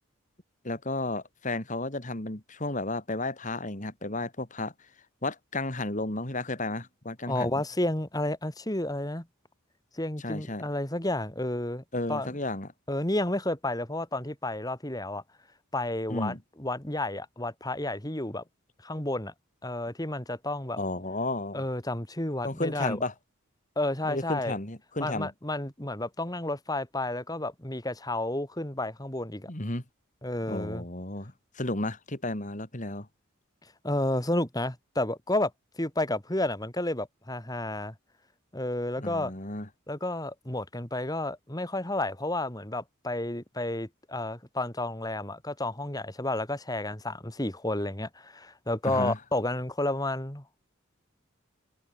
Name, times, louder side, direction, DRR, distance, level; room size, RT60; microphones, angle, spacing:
voice 1, 0.6-4.7 5.2-7.5 10.2-10.6 11.9-12.7 16.1-16.4 20.8-21.6 22.4-23.1 24.0-25.3 29.5-29.8 30.5-33.1 39.0-39.7 48.8-49.2, left 2 dB, 35° left, 2.7 m, -33 dB
voice 2, 7.3-9.3 9.9-11.8 12.1-12.3 12.9-15.2 15.7-18.4 18.8-19.3 19.6-20.8 21.5-23.0 23.8-24.5 25.0-29.5 30.2-30.8 33.8-35.5 35.8-37.9 38.5-39.3 39.9-50.6, left 1 dB, 20° left, 2.5 m, -31 dB
head